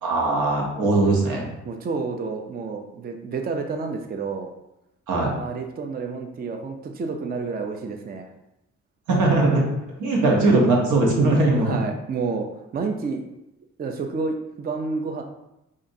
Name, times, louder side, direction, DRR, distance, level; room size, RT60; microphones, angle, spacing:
voice 1, 0.0-1.5 5.1-5.3 9.1-9.6 10.0-11.8, right 2 dB, 85° right, -1 dB, 1.0 m, -20 dB
voice 2, 1.6-4.5 5.3-8.3 11.6-12.5 12.7-13.2 13.8-15.2, right 4 dB, 30° right, 4 dB, 0.5 m, -29 dB
5.0 x 2.5 x 2.6 m, 0.89 s
cardioid pair, 90°, 30 cm